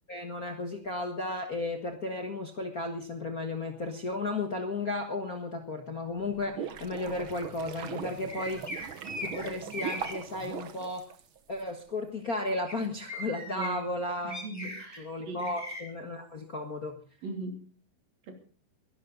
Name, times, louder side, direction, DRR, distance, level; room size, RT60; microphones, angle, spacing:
voice 1, 0.1-8.6 9.0-11.0 11.5-14.4 15.0-17.0, left 2 dB, 40° left, 3 dB, 1.4 m, -34 dB
sound 1, 6.2-11.6, right 7 dB, 60° right, 1.4 m, -40 dB
sound 2, 8.3-10.1 12.7-12.8 13.0-13.7 14.3-15.0 15.4-15.8, left 1 dB, 5° left, 3.6 m, -39 dB
voice 2, 13.5-14.0 14.2-15.5 17.2-17.6 18.3-18.4, right 2 dB, 80° right, 4 dB, 4.8 m, -39 dB
22.5 x 12.0 x 4.0 m, 0.40 s
omnidirectional pair, 3.9 m